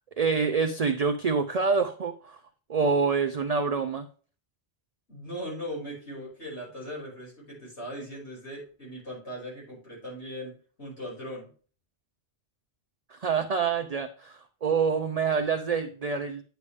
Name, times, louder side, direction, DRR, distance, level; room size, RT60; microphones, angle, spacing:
voice 1, 0.2-2.4 2.7-4.1 13.1-16.4, right 5 dB, 45° right, 7 dB, 0.6 m, -26 dB
voice 2, 5.1-11.5, equal, 75° left, -5 dB, 5.9 m, -39 dB
9.7 x 6.9 x 3.4 m, 0.39 s
omnidirectional pair, 1.2 m